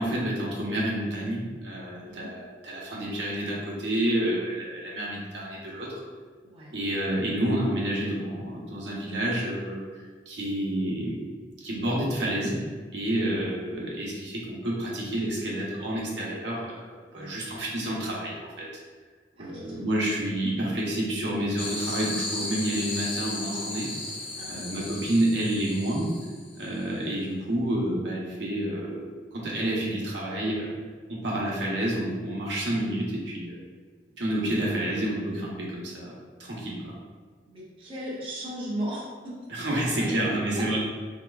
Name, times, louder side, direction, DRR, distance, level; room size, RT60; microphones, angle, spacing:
voice 1, 0.0-6.0 6.7-10.0 10.3-11.2 11.6-12.6 12.9-18.7 19.4-23.9 24.5-26.1 26.5-29.0 29.3-30.7 31.1-33.6 34.2-36.9 39.5-40.8, right 1 dB, 75° right, -4 dB, 0.9 m, -29 dB
voice 2, 6.4-6.8 13.1-13.3 17.1-17.4 19.4-19.8 24.3-24.6 34.6-35.1 37.4-39.3 39.7-40.8, right 1 dB, 30° right, -7 dB, 0.7 m, -38 dB
sound 1, 21.6-26.7, left 2 dB, 30° left, 0.6 m, -35 dB
4.2 x 2.9 x 2.3 m, 1.5 s
head